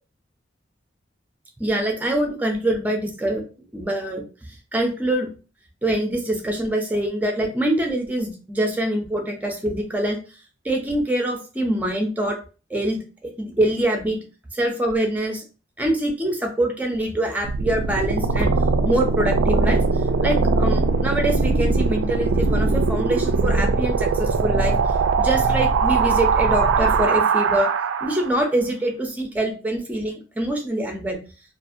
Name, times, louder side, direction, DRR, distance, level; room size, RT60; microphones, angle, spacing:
voice 1, 1.6-3.4 3.7-4.2 4.7-5.3 5.8-10.2 10.6-12.4 12.7-14.2 14.5-15.4 15.8-18.5 18.8-19.8 20.2-24.8 25.2-27.7 28.0-31.2, right 1 dB, 10° right, 3 dB, 0.5 m, -24 dB
sound 1, 17.4-28.4, right 4 dB, 90° right, 0.3 m, -20 dB
2.6 x 2.4 x 2.5 m, 0.34 s
head